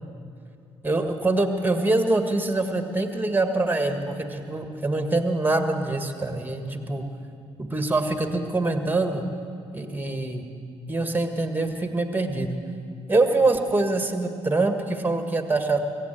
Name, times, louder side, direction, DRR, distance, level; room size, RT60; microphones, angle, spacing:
voice 1, 0.8-7.0 7.6-9.3 9.7-10.5 10.9-12.6 13.1-15.8, right 2 dB, 10° right, 6 dB, 1.7 m, -24 dB
23.0 x 8.2 x 7.6 m, 2.4 s
figure-of-eight pair, 45°, 15 cm